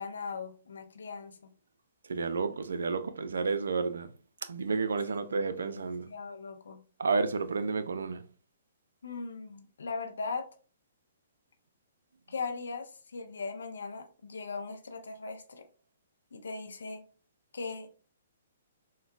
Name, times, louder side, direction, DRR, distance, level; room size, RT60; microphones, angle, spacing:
voice 1, 0.0-1.5 5.1-5.2 5.6-6.8 9.0-10.5 12.3-15.7 16.3-17.0 17.5-17.9, left 4 dB, 80° left, 0.5 m, -39 dB
voice 2, 2.1-4.1 4.4-6.1 7.0-8.2, right 4 dB, 80° right, 0.4 m, -31 dB
3.7 x 2.2 x 2.3 m
hypercardioid pair, 130°, 0 cm